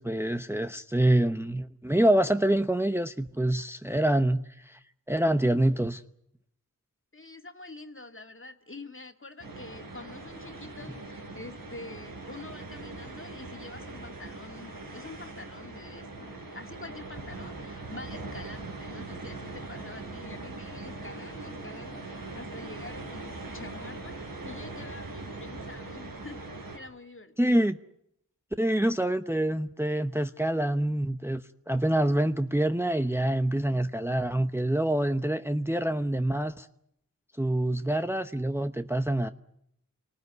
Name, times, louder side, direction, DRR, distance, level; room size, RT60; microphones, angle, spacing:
voice 1, 0.0-4.8 5.1-6.0 27.4-27.8 28.6-36.7 37.4-39.3, right 1 dB, 5° right, 0.9 m, -26 dB
voice 2, 7.1-26.4 26.7-27.7, left 2 dB, 35° left, 2.2 m, -46 dB
sound 1, 9.4-26.8, right 2 dB, 90° right, 5.3 m, -41 dB
28.0 x 19.0 x 9.4 m
wide cardioid pair, 50°, 34 cm